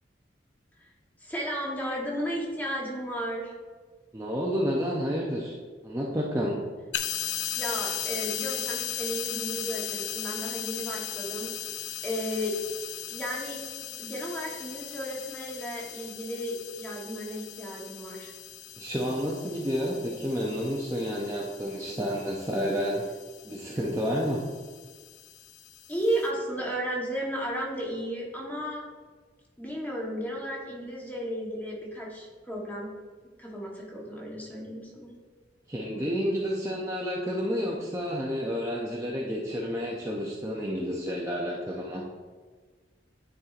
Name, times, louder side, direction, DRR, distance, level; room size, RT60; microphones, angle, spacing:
voice 1, 1.2-3.5 7.6-11.5 12.0-12.6 13.1-13.6 14.0-18.3 25.9-28.8 29.6-32.9 33.4-35.1, equal, 10° left, -3 dB, 1.1 m, -34 dB
voice 2, 4.1-5.5 5.8-6.6 18.8-23.0 23.4-24.4 35.7-42.0, equal, 15° right, -3 dB, 0.5 m, -30 dB
sound 1, 6.9-26.3, left 11 dB, 90° left, 0.4 m, -38 dB
9.4 x 4.4 x 2.5 m, 1.5 s
head